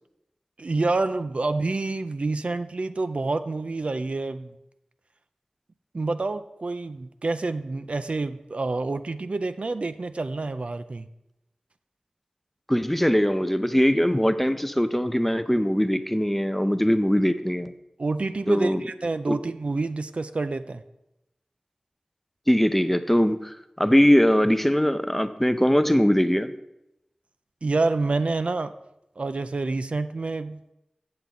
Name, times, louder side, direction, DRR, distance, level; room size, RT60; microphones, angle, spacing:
voice 1, 0.6-4.5 5.9-11.1 18.0-20.8 27.6-28.7 29.2-30.6, right 3 dB, 60° right, 10 dB, 0.4 m, -28 dB
voice 2, 12.7-17.7 18.5-18.8 19.3-19.4 22.5-26.5, equal, 10° left, 11 dB, 0.5 m, -21 dB
7.6 x 6.9 x 3.8 m, 0.87 s
cardioid pair, 40°, 2 cm